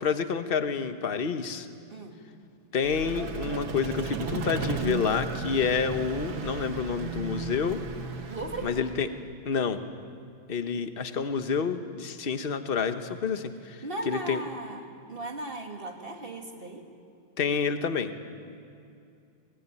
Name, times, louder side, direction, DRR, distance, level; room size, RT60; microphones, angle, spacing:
voice 1, 0.0-1.7 2.7-7.8 8.6-9.1 9.4-9.8 10.5-14.4 17.4-18.1, left 6 dB, 35° left, 9 dB, 1.1 m, -28 dB
voice 2, 1.9-2.2 8.3-8.7 13.8-14.8 15.1-16.9, right 2 dB, 30° right, 3 dB, 2.4 m, -37 dB
Vehicle, 2.8-9.2, right 4 dB, 85° right, 2.3 m, -35 dB
24.0 x 21.0 x 9.8 m, 2.5 s
omnidirectional pair, 2.1 m